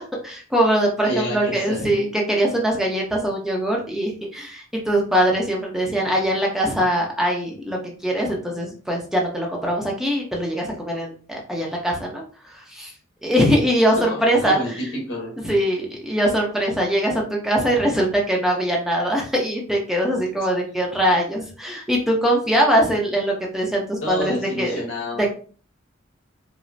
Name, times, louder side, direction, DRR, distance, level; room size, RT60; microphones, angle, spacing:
voice 1, 0.0-12.2 12.5-12.9 13.2-14.6 15.4-24.8 25.2-25.3, equal, ahead, -1 dB, 0.7 m, -22 dB
voice 2, 1.0-2.1 14.0-15.4 24.0-25.3, left 1 dB, 80° left, -1 dB, 1.5 m, -29 dB
4.9 x 2.0 x 2.7 m, 0.40 s
head